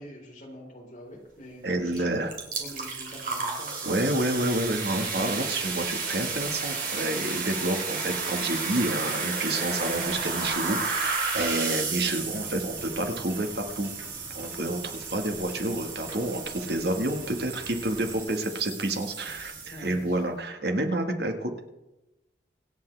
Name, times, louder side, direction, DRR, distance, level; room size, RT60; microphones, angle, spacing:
voice 1, 0.0-2.3 2.6-4.1 19.7-20.2, equal, 45° left, -2 dB, 3.9 m, -45 dB
voice 2, 1.6-2.3 3.9-13.9 14.4-21.6, right 1 dB, 65° right, 5 dB, 1.6 m, -29 dB
sound 1, 1.9-2.0 2.3-20.0, right 4 dB, 50° right, 3.0 m, -33 dB
sound 2, 12.2-18.2, equal, 15° right, 1.8 m, -48 dB
25.0 x 8.5 x 3.4 m, 0.95 s
head